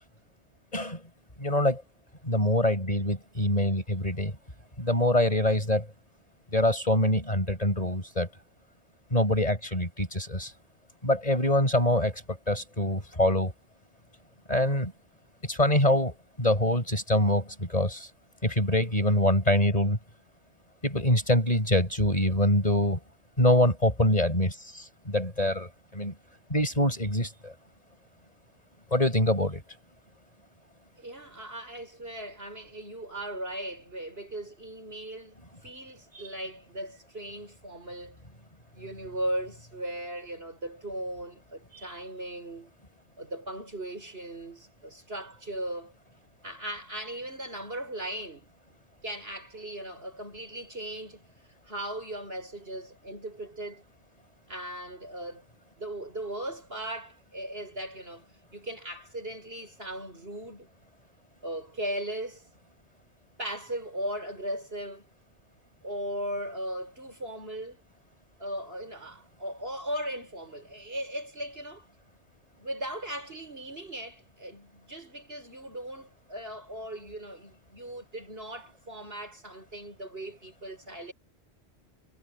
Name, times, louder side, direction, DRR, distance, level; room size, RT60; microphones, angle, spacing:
voice 1, 1.4-1.8 2.2-4.3 4.8-5.9 6.5-8.3 9.1-10.5 11.0-13.5 14.5-14.9 15.4-18.1 18.4-20.0 20.8-23.0 23.4-26.1 26.5-27.5 28.9-29.6, left 1 dB, 35° left, 7.3 m, -25 dB
voice 2, 31.0-38.2 38.7-42.7 43.2-45.9 46.4-48.5 49.0-51.2 51.7-53.8 54.5-55.4 55.8-58.3 58.5-60.7 61.4-62.4 63.4-65.1 65.8-67.8 68.4-71.9 72.6-81.1, right 1 dB, 65° right, 7.6 m, -38 dB
omnidirectional pair, 1.1 m